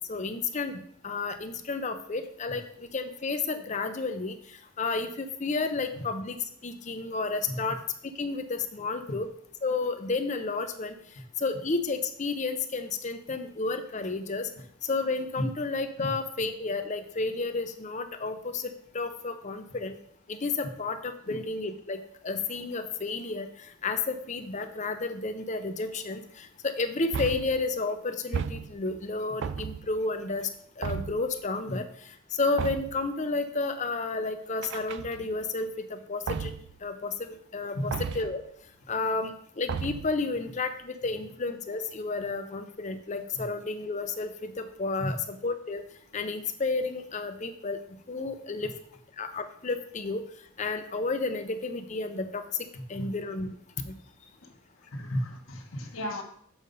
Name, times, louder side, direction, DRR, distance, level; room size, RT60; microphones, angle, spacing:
voice 1, 0.0-7.8 8.2-9.3 9.6-11.0 11.4-14.5 14.8-20.0 20.3-30.5 30.8-36.5 36.8-38.4 38.9-45.8 46.1-47.8 48.1-48.7 49.2-50.2 50.6-53.5 53.8-54.0, left 3 dB, 35° left, 8 dB, 0.6 m, -32 dB
sound 1, 27.1-27.7 28.3-29.0 29.4-30.0 30.8-31.3 32.6-33.1 34.6-35.4 36.3-36.8 37.9-38.4 39.7-40.2, right 6 dB, 55° right, 0.3 m, -34 dB
voice 2, 54.9-56.2, equal, 75° left, 3 dB, 1.3 m, -33 dB
7.2 x 5.2 x 5.3 m, 0.65 s
head